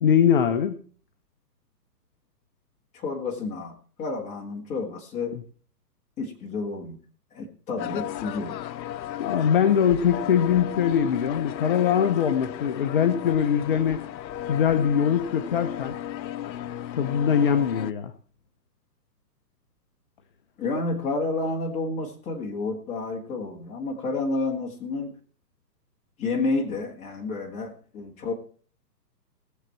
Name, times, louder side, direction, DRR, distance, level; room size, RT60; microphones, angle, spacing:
voice 1, 0.0-0.8 9.2-14.0 14.5-16.0 16.9-18.1, left 8 dB, 35° left, 8 dB, 0.6 m, -22 dB
voice 2, 2.9-5.4 6.2-7.0 7.3-8.5 20.6-25.2 26.2-28.3, left 3 dB, 15° left, 0 dB, 1.8 m, -30 dB
sound 1, 7.8-17.9, left 11 dB, 90° left, 0.6 m, -34 dB
18.5 x 7.3 x 4.5 m, 0.42 s
hypercardioid pair, 160°, 50 cm